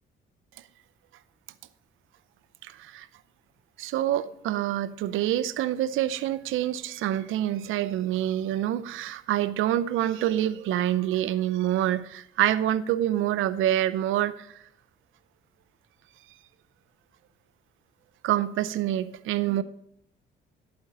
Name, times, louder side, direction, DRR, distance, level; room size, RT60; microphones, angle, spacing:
voice 1, 2.6-3.1 3.8-14.5 18.2-19.6, right 12 dB, 85° right, 0.6 m, -26 dB
12.5 x 8.8 x 4.0 m
cardioid pair, 90°, 20 cm